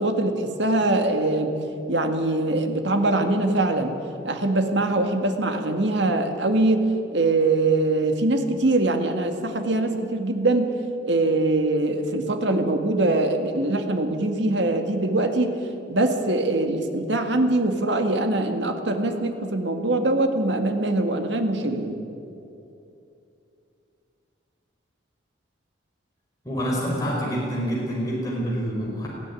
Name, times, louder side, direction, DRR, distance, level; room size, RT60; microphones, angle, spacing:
voice 1, 0.0-1.5 1.9-3.9 4.2-6.9 7.1-10.7 11.0-15.6 15.9-22.0, right 2 dB, 65° right, 5 dB, 1.9 m, -23 dB
voice 2, 26.4-29.1, equal, 20° left, -5 dB, 4.8 m, -27 dB
19.5 x 15.0 x 9.8 m, 2.7 s
head